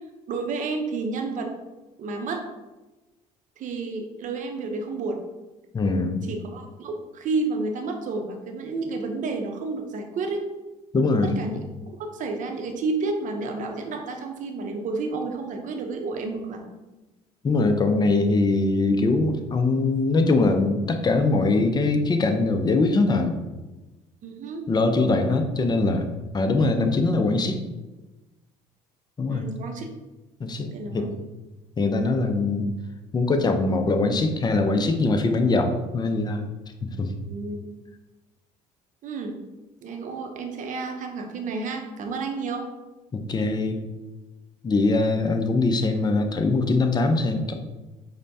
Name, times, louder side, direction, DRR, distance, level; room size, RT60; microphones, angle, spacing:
voice 1, 0.3-1.5 2.0-2.5 3.6-5.2 6.3-10.4 11.2-16.7 24.2-24.6 29.3-29.9 30.7-31.1 37.3-37.6 39.0-39.4 39.8-42.7, right 3 dB, 50° right, 4 dB, 0.6 m, -31 dB
voice 2, 5.7-6.3 10.9-11.4 17.4-23.4 24.7-26.1 26.3-27.6 29.2-29.5 30.4-31.2 31.8-32.7 33.1-36.5 37.0-37.1 43.1-43.8 44.6-47.5, left 3 dB, 25° left, 6 dB, 0.5 m, -22 dB
5.1 x 2.1 x 2.6 m, 1.1 s
hypercardioid pair, 65°, 17 cm